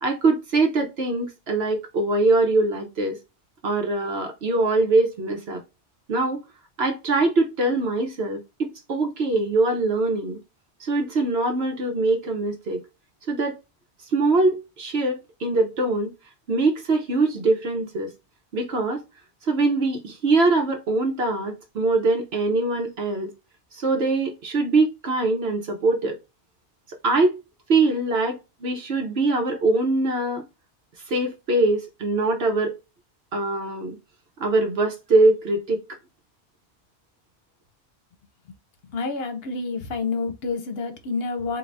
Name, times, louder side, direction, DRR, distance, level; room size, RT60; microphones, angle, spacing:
voice 1, 0.0-3.2 3.6-5.6 6.1-6.4 6.8-10.4 10.8-12.8 13.3-13.6 14.1-16.1 16.5-18.1 18.5-19.0 19.4-23.3 23.7-26.2 26.9-27.4 27.7-30.4 31.1-32.7 33.3-33.9 34.4-35.8, right 2 dB, 65° right, 1.0 m, -23 dB
voice 2, 38.9-41.6, left 4 dB, 60° left, 0.9 m, -28 dB
3.8 x 2.6 x 3.2 m
omnidirectional pair, 1.2 m